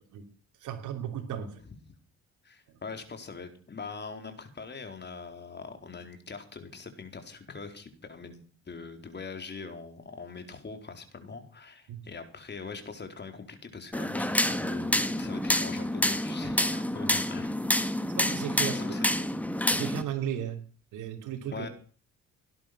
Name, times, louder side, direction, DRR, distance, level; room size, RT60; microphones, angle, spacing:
voice 1, 0.6-1.6 11.9-12.0 18.2-18.8 19.2-19.3 19.7-20.6 20.9-21.7, right 9 dB, 85° right, 3 dB, 3.1 m, -35 dB
voice 2, 2.4-8.4 8.7-17.6 18.6-19.1 21.5-21.7, left 4 dB, 35° left, 7 dB, 4.2 m, -42 dB
sound 1, 13.9-20.0, left 1 dB, 5° left, 1.7 m, -28 dB
18.0 x 11.0 x 6.1 m, 0.40 s
cardioid pair, 90°, 30 cm